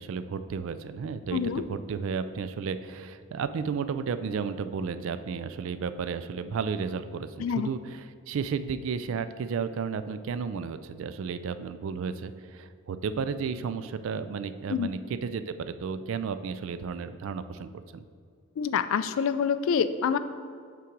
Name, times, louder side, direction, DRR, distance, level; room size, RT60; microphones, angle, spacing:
voice 1, 0.0-18.0, right 5 dB, 60° right, 12 dB, 0.3 m, -33 dB
voice 2, 1.3-1.6 7.4-7.7 14.7-14.9 18.6-20.2, left 7 dB, 65° left, 12 dB, 0.3 m, -26 dB
5.7 x 3.8 x 6.0 m, 2.1 s
head